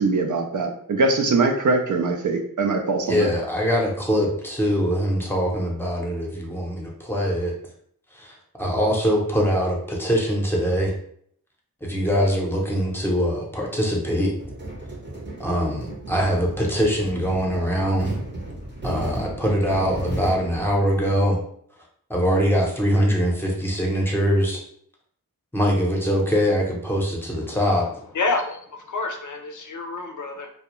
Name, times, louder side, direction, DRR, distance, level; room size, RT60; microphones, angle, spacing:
voice 1, 0.0-3.3, right 3 dB, 60° right, 3 dB, 0.5 m, -22 dB
voice 2, 3.1-7.5 8.1-10.9 11.8-14.3 15.4-18.1 18.8-21.4 22.1-24.6 25.5-27.9, equal, 5° left, -2 dB, 0.7 m, -23 dB
sound 1, 14.4-21.2, right 1 dB, 30° right, 0.8 m, -34 dB
voice 3, 28.1-30.5, left 3 dB, 60° left, 4 dB, 0.4 m, -28 dB
2.3 x 2.1 x 2.9 m, 0.65 s
wide cardioid pair, 60°, 35 cm